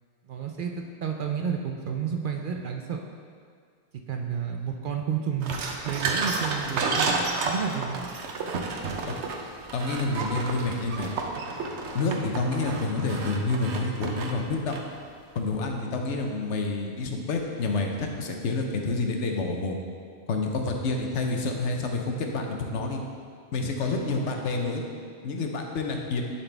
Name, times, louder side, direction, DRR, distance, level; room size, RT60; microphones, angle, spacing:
voice 1, 0.3-3.0 4.1-7.2 7.4-8.0, right 7 dB, 60° right, 3 dB, 0.6 m, -31 dB
sound 1, 5.4-15.0, right 3 dB, 75° right, 1.0 m, -31 dB
voice 2, 9.7-11.1 11.9-14.7 15.3-19.8 20.3-23.0 23.5-24.8 25.2-26.2, left 3 dB, 80° left, 2 dB, 1.1 m, -28 dB
11.5 x 4.2 x 3.4 m, 2.1 s
omnidirectional pair, 1.2 m